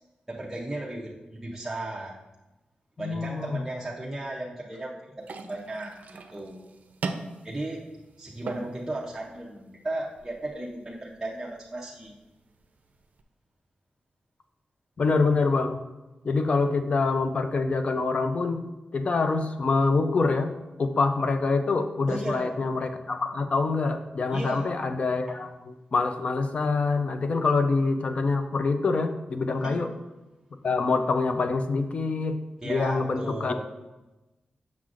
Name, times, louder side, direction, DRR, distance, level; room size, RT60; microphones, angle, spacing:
voice 1, 0.3-2.1 3.0-6.7 7.4-7.8 8.2-12.2 22.1-22.6 24.3-25.3 29.6-29.8 32.6-33.6, right 1 dB, 15° right, -5 dB, 0.6 m, -35 dB
voice 2, 3.0-3.6 15.0-15.8 16.2-18.6 18.9-20.5 20.8-29.9 30.6-32.4 32.6-33.6, left 3 dB, 45° left, 7 dB, 0.5 m, -25 dB
sound 1, 5.2-13.2, right 3 dB, 65° right, 0.5 m, -41 dB
7.4 x 6.0 x 2.5 m, 1.0 s
wide cardioid pair, 150°, 3 cm